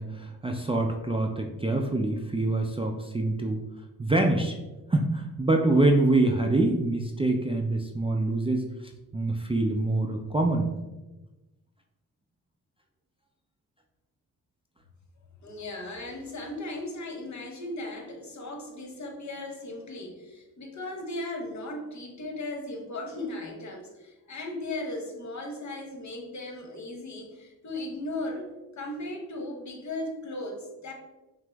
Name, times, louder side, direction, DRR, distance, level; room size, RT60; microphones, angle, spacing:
voice 1, 0.0-3.6 4.0-4.5 4.9-8.6 9.1-10.7, right 2 dB, 15° right, 2 dB, 0.4 m, -25 dB
voice 2, 15.4-30.9, left 2 dB, 45° left, 2 dB, 1.0 m, -37 dB
5.7 x 2.0 x 3.4 m, 1.1 s
supercardioid pair, 50°, 38 cm